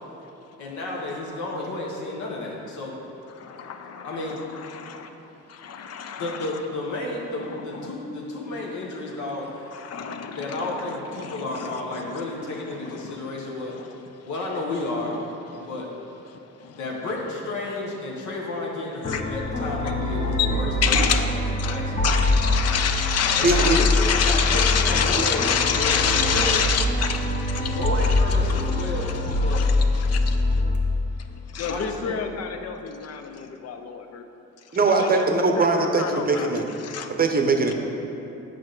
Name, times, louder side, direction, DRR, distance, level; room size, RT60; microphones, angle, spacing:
voice 1, 0.6-2.9 4.0-4.4 6.2-9.7 10.4-13.7 14.3-15.2 15.6-15.9 16.8-21.3 21.6-22.6 23.4-26.6 27.6-29.6 31.7-32.2, left 2 dB, 70° left, -2 dB, 1.0 m, -32 dB
voice 2, 3.3-5.1 5.5-6.6 7.4-7.9 9.7-12.2 12.7-13.2 13.7-13.9 15.5-15.7 16.3-16.9 19.1-19.2 19.8-19.9 20.4-20.5 20.8-30.6 31.2-34.2 34.8-35.2 35.5-37.1 37.7-37.8, left 7 dB, 55° left, 7 dB, 0.6 m, -28 dB
sound 1, 19.0-30.8, left 2 dB, 25° left, 0.8 m, -24 dB
voice 3, 23.4-23.8 25.2-25.3 34.7-36.6 37.2-37.7, right 3 dB, 30° right, 3 dB, 0.7 m, -21 dB
7.6 x 5.1 x 3.9 m, 3.0 s
cardioid pair, 90°, 30 cm